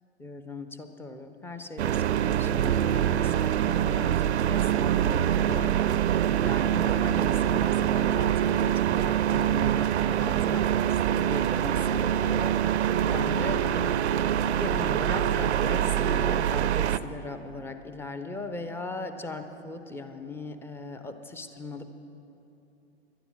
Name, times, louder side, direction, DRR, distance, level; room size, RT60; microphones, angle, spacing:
voice 1, 0.2-6.1 6.4-12.9 13.1-13.7 14.5-21.9, left 3 dB, 5° left, 8 dB, 0.6 m, -38 dB
sound 1, 1.8-17.0, right 10 dB, 75° right, 0.5 m, -25 dB
21.0 x 12.0 x 3.5 m, 3.0 s
figure-of-eight pair, 105°, 34 cm